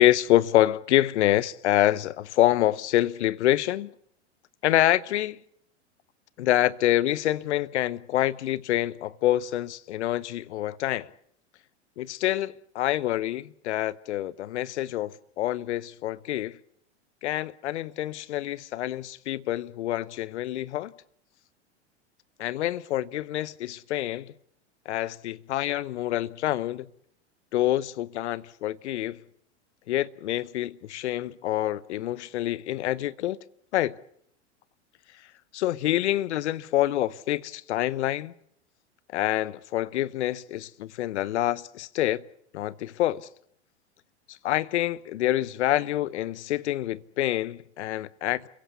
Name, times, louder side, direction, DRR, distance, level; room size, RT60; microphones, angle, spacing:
voice 1, 0.0-3.9 4.6-5.4 6.4-11.1 12.0-16.6 17.2-20.9 22.4-24.3 24.9-26.9 27.5-29.2 29.9-33.4 33.7-34.0 35.5-38.3 39.1-42.2 42.5-43.3 44.3-48.5, left 14 dB, 70° left, 1.0 m, -26 dB
28.5 x 16.5 x 8.2 m
hypercardioid pair, 95°, 35 cm